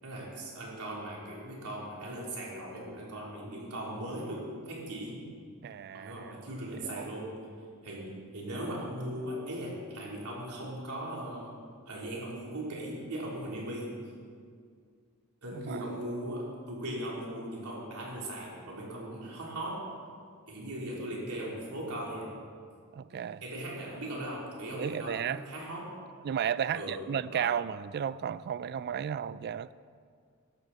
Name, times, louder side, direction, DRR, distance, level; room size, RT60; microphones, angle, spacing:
voice 1, 0.0-5.3 5.9-7.4 7.8-11.6 11.9-14.0 15.4-19.9 20.5-22.3 23.4-26.0 26.7-27.6, right 1 dB, 90° right, 3.5 m, -39 dB
voice 2, 5.6-6.3 6.8-7.1 15.5-15.8 22.9-23.4 24.8-25.4 26.2-29.7, right 8 dB, 45° right, 0.3 m, -33 dB
14.0 x 12.0 x 4.1 m
head